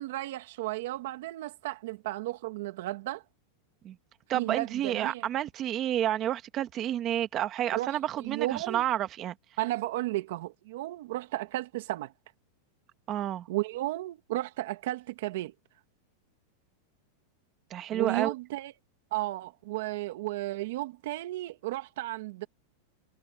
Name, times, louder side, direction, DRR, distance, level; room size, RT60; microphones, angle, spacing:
voice 1, 0.0-3.2 4.3-5.3 7.7-8.0 8.2-8.8 9.6-12.1 13.5-15.5 17.9-18.7 19.1-22.5, right 17 dB, 60° right, 2.1 m, -34 dB
voice 2, 4.3-9.3 13.1-13.5 17.7-18.3, right 11 dB, 25° right, 1.5 m, -30 dB
supercardioid pair, 170°, 0 cm